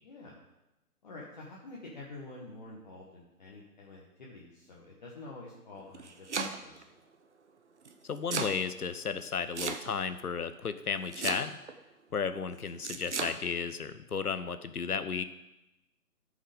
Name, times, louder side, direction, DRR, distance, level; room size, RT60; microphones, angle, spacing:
voice 1, 0.0-0.4 1.0-6.8, left 2 dB, 30° left, -4 dB, 1.3 m, -48 dB
Domestic sounds home sounds, 5.8-6.8 7.8-8.6 9.5-10.2 11.1-11.7 12.8-13.4, right 4 dB, 45° right, 0.9 m, -35 dB
voice 2, 8.0-11.6 12.1-15.2, left 6 dB, 70° left, 11 dB, 0.9 m, -34 dB
14.0 x 5.6 x 5.1 m, 0.95 s
figure-of-eight pair, 150°, 47 cm